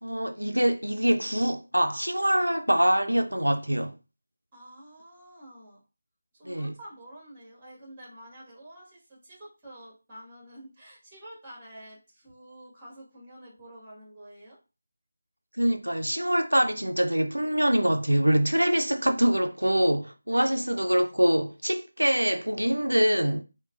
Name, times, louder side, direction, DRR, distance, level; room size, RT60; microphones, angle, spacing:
voice 1, 0.0-4.0 6.4-6.7 15.6-23.4, equal, 85° right, 0.4 m, -24 dB
voice 2, 4.5-5.8 6.4-14.6 20.3-20.5, right 1 dB, 10° right, 1.5 m, -48 dB
3.8 x 2.2 x 2.5 m
figure-of-eight pair, 165°, 0 cm